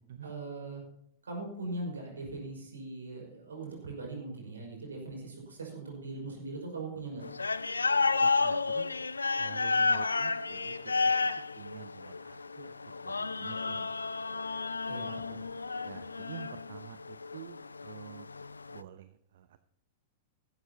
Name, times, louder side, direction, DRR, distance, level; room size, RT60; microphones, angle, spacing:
voice 1, 0.2-0.8 1.2-7.2 14.9-15.4, right 2 dB, 75° right, 0 dB, 5.3 m, -40 dB
sound 1, 7.2-18.8, left 4 dB, 80° left, 0.4 m, -31 dB
voice 2, 8.2-8.9 9.4-11.2 11.6-14.1 15.8-18.3 18.7-19.6, right 11 dB, 60° right, 12 dB, 0.7 m, -48 dB
15.0 x 13.0 x 2.9 m, 0.72 s
figure-of-eight pair, 100°, 0 cm